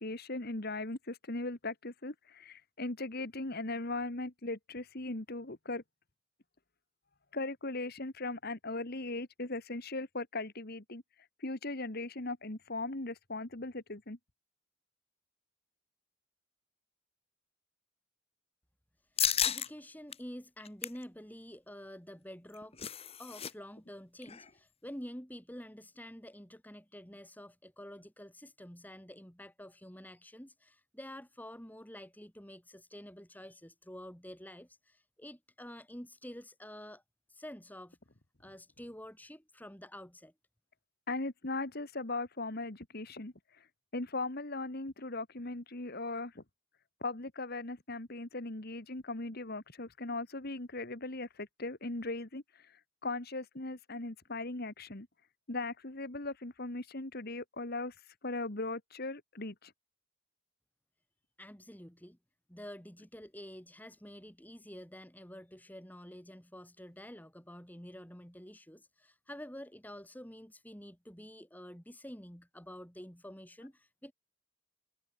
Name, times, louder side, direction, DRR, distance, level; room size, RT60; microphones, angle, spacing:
voice 1, 0.0-5.8 7.3-11.0 11.4-14.2 41.1-43.3 43.9-46.4 47.0-52.4 53.0-55.1 55.5-57.9 58.2-59.7, left 2 dB, 45° left, 1.8 m, -38 dB
voice 2, 19.1-22.7 23.2-37.0 37.3-38.0 38.4-40.3 61.4-62.2 62.5-74.1, equal, 10° left, 3.7 m, -49 dB
sound 1, 19.2-19.7 20.1-20.2 20.6-21.0 22.3-23.5 23.8-23.9 24.2-24.5, left 9 dB, 30° left, 1.5 m, -33 dB
head